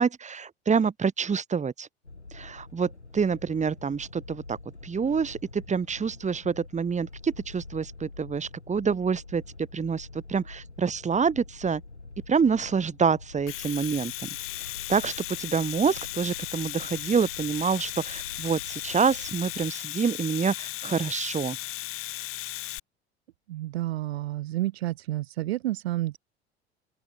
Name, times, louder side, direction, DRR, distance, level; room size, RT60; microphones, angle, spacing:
voice 1, 0.0-1.9 2.3-4.6 4.8-9.4 9.7-11.8 12.3-14.3 14.9-15.1 15.4-21.6, right 6 dB, 20° right, 2.4 m, -27 dB
sound 1, 2.0-19.7, left 3 dB, 90° left, 2.7 m, -46 dB
Domestic sounds home sounds, 13.3-22.8, left 17 dB, 40° left, 1.1 m, -36 dB
voice 2, 23.5-26.2, right 15 dB, 65° right, 1.0 m, -30 dB
open air
figure-of-eight pair, 70°, 33 cm